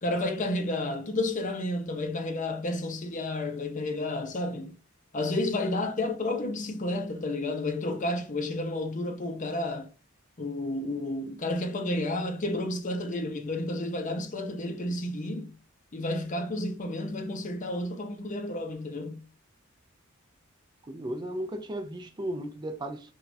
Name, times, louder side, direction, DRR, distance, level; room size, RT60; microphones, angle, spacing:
voice 1, 0.0-4.8 5.1-9.9 10.4-15.5 15.9-19.2, left 1 dB, 35° left, 0.6 m, -31 dB
voice 2, 20.9-23.1, right 1 dB, 20° right, 0.4 m, -35 dB
6.0 x 2.4 x 2.6 m
head